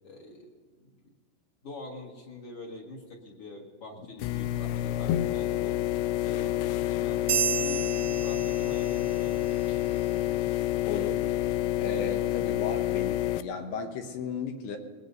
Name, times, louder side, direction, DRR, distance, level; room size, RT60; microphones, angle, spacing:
voice 1, 0.0-0.9 1.6-5.8 6.2-10.6, left 2 dB, 50° left, -3 dB, 1.9 m, -45 dB
sound 1, 4.2-13.4, left 14 dB, 90° left, 2.2 m, -28 dB
sound 2, 7.3-9.2, right 10 dB, 85° right, 3.3 m, -31 dB
voice 2, 10.9-11.2 11.8-14.8, left 5 dB, 75° left, 4 dB, 2.8 m, -35 dB
22.0 x 18.5 x 2.7 m, 1.4 s
omnidirectional pair, 5.1 m